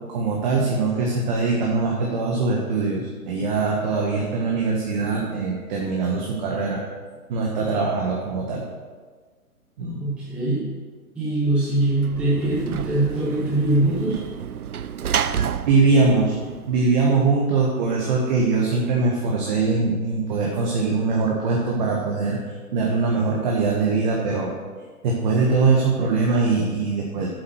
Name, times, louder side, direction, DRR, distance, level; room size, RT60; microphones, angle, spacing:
voice 1, 0.1-6.8 7.3-8.6 9.8-10.0 15.6-16.4 16.7-22.4 22.7-24.5 25.0-27.3, right 4 dB, 30° right, -2 dB, 1.5 m, -22 dB
voice 2, 10.0-10.7 11.1-14.2, right 2 dB, ahead, -8 dB, 0.8 m, -22 dB
Sliding door / Slam, 11.8-17.2, right 8 dB, 75° right, 0.6 m, -30 dB
9.4 x 7.8 x 6.3 m, 1.5 s
figure-of-eight pair, 135°, 45 cm